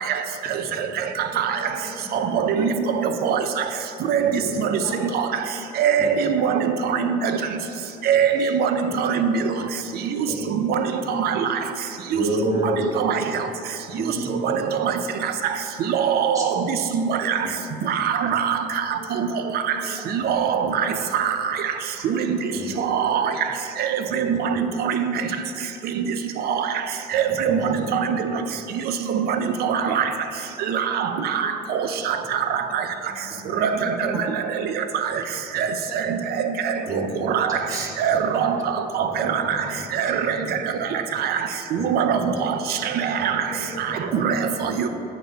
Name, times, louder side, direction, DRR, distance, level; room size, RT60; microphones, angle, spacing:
voice 1, 0.5-3.2 4.5-5.0 5.4-7.1 14.6-14.8 18.9-19.3 19.8-20.3 20.7-20.9 22.0-22.9 23.2-23.3 24.6-24.7 31.4-31.9 32.2-34.5 35.9-36.5 36.7-36.9 38.7-38.8 40.0-40.1 40.4-41.2 42.1-42.7 43.5-43.8 44.4-44.8, equal, ahead, -9 dB, 1.6 m, -40 dB
voice 2, 2.3-2.7 3.0-3.4 4.1-4.3 4.7-4.8 5.1-5.3 5.8-7.2 8.1-9.4 10.6-10.8 11.2-11.5 12.1-12.2 13.0-13.2 14.4-14.9 15.9-16.6 16.9-17.4 17.9-18.6 19.2-19.3 20.2-20.8 21.1-21.4 22.1-22.4 22.8-23.3 23.8-25.1 26.0-26.1 27.1-28.3 29.6-30.0 30.7-31.5 32.1-32.2 32.7-32.8 33.6-33.7 35.5-35.7 36.4-36.7 37.3-37.6 38.0-38.6 39.0-39.4 39.9-40.4 41.2-41.4 41.8-42.2 43.0-43.4 44.1-44.4 44.8-44.9, right 8 dB, 65° right, 8 dB, 0.5 m, -22 dB
voice 3, 4.2-4.5 10.3-10.5 12.1-12.8 13.9-14.6 16.3-16.4 22.5-22.7 24.1-24.4 27.3-27.8 36.9-37.1 37.7-37.9 39.0-39.6 40.2-40.3 41.8-41.9 43.2-43.3 44.6-44.7, right 1 dB, 20° right, -4 dB, 1.6 m, -30 dB
8.1 x 4.0 x 5.3 m, 2.9 s
cardioid pair, 110°, 17 cm